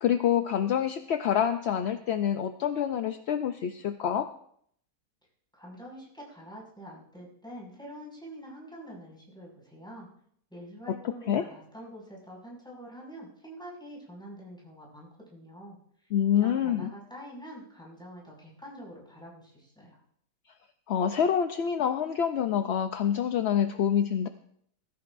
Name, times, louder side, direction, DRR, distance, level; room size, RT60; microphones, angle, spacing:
voice 1, 0.0-4.3 11.3-11.4 16.1-16.9 20.9-24.3, left 9 dB, 60° left, 8 dB, 0.7 m, -26 dB
voice 2, 5.6-10.1 10.5-15.8 16.3-20.0, equal, 5° left, -4 dB, 5.7 m, -46 dB
21.0 x 14.0 x 2.6 m, 0.65 s
omnidirectional pair, 1.6 m